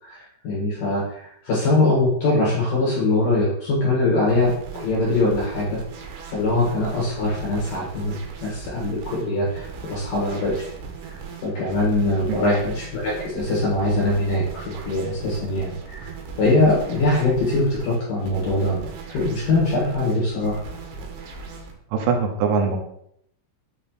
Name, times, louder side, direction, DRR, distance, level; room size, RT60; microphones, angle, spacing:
voice 1, 0.0-5.8 6.2-10.7 11.1-16.1 16.4-20.6, left 2 dB, 60° left, -6 dB, 2.4 m, -22 dB
sound 1, 4.3-21.7, right 5 dB, 75° right, 2.5 m, -38 dB
voice 2, 21.9-22.8, right 5 dB, 90° right, 4 dB, 3.7 m, -22 dB
8.5 x 3.3 x 4.3 m, 0.71 s
omnidirectional pair, 5.9 m